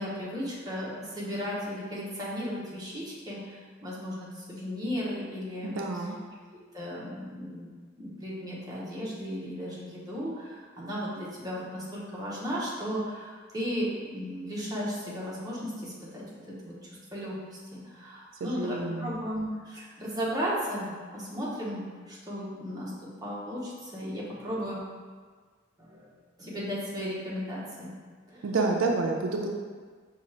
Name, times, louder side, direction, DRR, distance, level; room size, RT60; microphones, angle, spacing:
voice 1, 0.0-6.1 6.7-7.7 8.0-22.9 23.2-24.8 25.8-26.1 26.4-27.9 28.3-28.5, equal, 20° right, -6 dB, 0.8 m, -35 dB
voice 2, 5.6-6.2 18.4-19.1 28.4-29.5, right 3 dB, 75° right, 1 dB, 0.4 m, -29 dB
4.8 x 2.4 x 3.2 m, 1.5 s
head